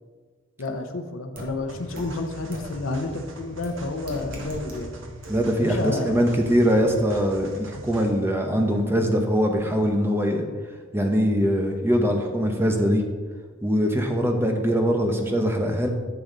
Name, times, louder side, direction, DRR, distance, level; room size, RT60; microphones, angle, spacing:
voice 1, 0.6-5.0 5.6-6.2, left 2 dB, 90° left, 4 dB, 0.8 m, -30 dB
sound 1, 1.4-1.5 2.0-2.1 2.5-2.6 3.6-3.7 4.1-4.8 5.2-5.3, equal, 45° right, 1.9 m, -36 dB
sound 2, 1.7-8.3, right 1 dB, 75° right, 1.2 m, -43 dB
voice 2, 5.3-10.5 10.9-13.0 13.6-15.9, equal, 10° right, 3 dB, 1.0 m, -22 dB
10.5 x 7.1 x 4.0 m, 1.5 s
head